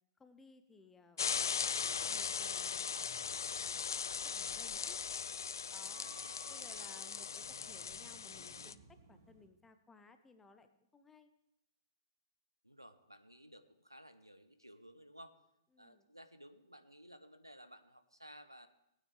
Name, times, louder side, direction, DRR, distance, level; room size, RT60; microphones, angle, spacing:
voice 1, 0.2-1.3 1.7-3.0 3.6-5.0 5.7-6.1 6.5-11.3 15.7-16.0, left 3 dB, 10° left, 9 dB, 0.8 m, -61 dB
sound 1, 1.2-8.7, left 6 dB, 65° left, 0.4 m, -39 dB
sound 2, 1.6-9.5, right 4 dB, 45° right, 1.5 m, -62 dB
voice 2, 6.1-7.0 12.6-15.4 15.8-18.7, equal, 90° right, 10 dB, 0.8 m, -57 dB
18.5 x 9.1 x 3.4 m, 0.82 s
figure-of-eight pair, 110°, 2 cm